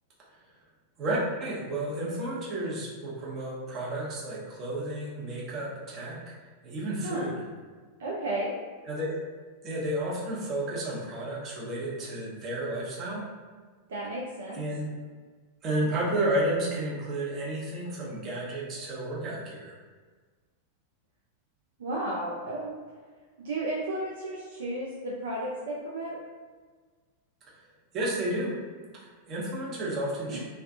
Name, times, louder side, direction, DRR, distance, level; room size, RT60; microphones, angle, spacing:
voice 1, 1.0-6.2 6.6-7.4 8.8-9.2 9.6-13.3 14.6-14.9 15.6-19.7 27.9-28.5 29.0-30.4, right 1 dB, 30° right, -6 dB, 0.7 m, -31 dB
voice 2, 7.0-7.3 8.0-8.5 13.9-14.6 21.8-22.8 23.4-26.2 30.2-30.4, right 1 dB, 60° right, -4 dB, 0.4 m, -33 dB
2.3 x 2.2 x 2.5 m, 1.5 s
figure-of-eight pair, 90°, 0 cm